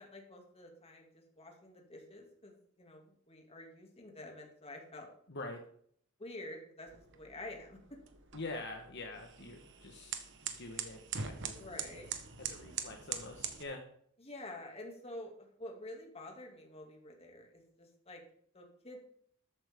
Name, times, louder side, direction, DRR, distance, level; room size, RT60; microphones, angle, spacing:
voice 1, 0.0-5.1 6.2-7.8 11.6-12.1 14.2-18.2 18.5-19.0, left 1 dB, 30° left, 1 dB, 2.5 m, -49 dB
voice 2, 5.3-5.6 8.3-11.9 12.4-13.8, left 2 dB, 60° left, 3 dB, 1.3 m, -45 dB
sound 1, 6.9-13.6, right 7 dB, 65° right, 1.3 m, -43 dB
13.5 x 9.1 x 3.7 m, 0.62 s
head